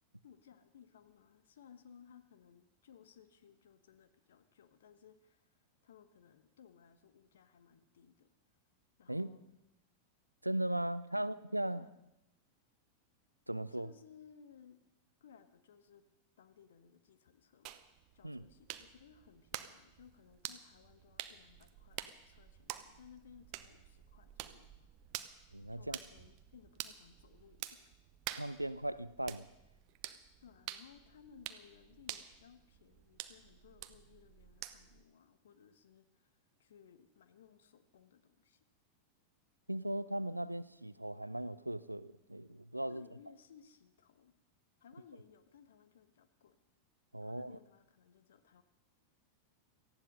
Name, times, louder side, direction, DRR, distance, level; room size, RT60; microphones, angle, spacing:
voice 1, 0.2-5.6 5.8-8.3 9.0-9.4 11.1-11.3 11.7-11.9 13.7-14.8 15.2-16.0 16.4-17.8 18.1-24.9 25.7-27.9 30.4-38.6 42.9-44.3 44.8-46.6 47.2-48.6, left 7 dB, 60° left, 1.3 m, -61 dB
voice 2, 10.4-11.9 13.5-13.9 18.2-18.4 25.5-26.0 28.3-29.5 39.7-43.0 47.1-47.6, right 1 dB, 85° right, 0.5 m, -38 dB
sound 1, 17.7-35.0, right 13 dB, 40° right, 0.9 m, -49 dB
18.0 x 14.5 x 5.4 m
figure-of-eight pair, 90°, 0 cm